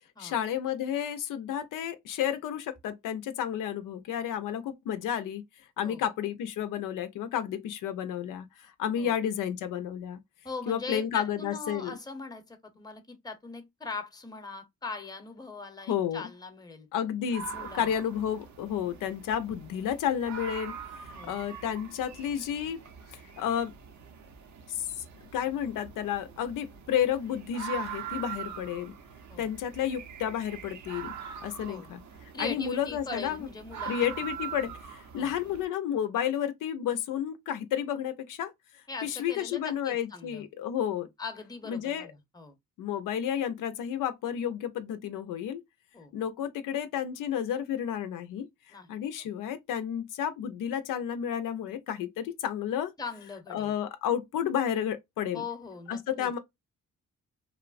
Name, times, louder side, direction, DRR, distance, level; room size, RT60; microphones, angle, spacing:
voice 1, 0.2-5.4 5.8-10.2 10.7-11.9 15.9-16.2 16.9-20.7 21.0-22.8 23.4-23.7 24.7-24.9 25.3-28.9 29.4-31.1 31.4-32.0 32.4-33.5 33.9-38.5 39.0-41.1 41.7-42.1 42.8-45.6 46.1-48.5 48.9-52.9 53.5-55.4 55.9-56.4, left 9 dB, 85° left, 0.5 m, -31 dB
voice 2, 10.4-16.9 17.5-17.9 21.1-21.4 29.3-29.5 31.7-31.9 32.3-34.0 35.1-35.3 38.9-40.5 41.2-42.5 45.9-46.1 48.7-49.3 53.0-53.8 55.3-56.4, left 4 dB, 15° left, 0.7 m, -41 dB
sound 1, 17.3-35.6, right 8 dB, 65° right, 0.7 m, -43 dB
3.0 x 2.0 x 2.4 m
cardioid pair, 80°, 31 cm